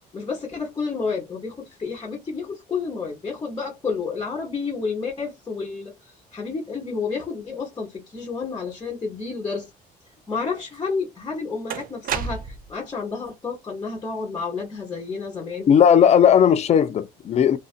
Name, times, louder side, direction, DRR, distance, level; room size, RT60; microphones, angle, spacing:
voice 1, 0.1-9.7 10.3-15.7, left 4 dB, 25° left, 1.0 m, -30 dB
sound 1, 10.7-10.8 11.7-12.8, right 7 dB, 55° right, 0.5 m, -30 dB
voice 2, 15.7-17.6, left 8 dB, 40° left, 0.4 m, -16 dB
2.6 x 2.5 x 2.5 m
cardioid pair, 110°, 17 cm